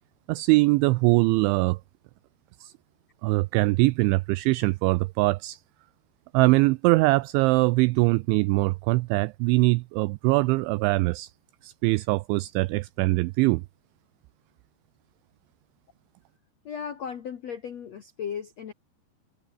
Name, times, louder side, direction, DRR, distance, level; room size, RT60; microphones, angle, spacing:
voice 1, 0.3-1.8 2.6-2.7 3.2-5.6 6.3-11.3 11.6-13.6, right 23 dB, 85° right, 2.8 m, -22 dB
voice 2, 16.6-18.7, left 7 dB, 80° left, 1.5 m, -36 dB
omnidirectional pair, 5.6 m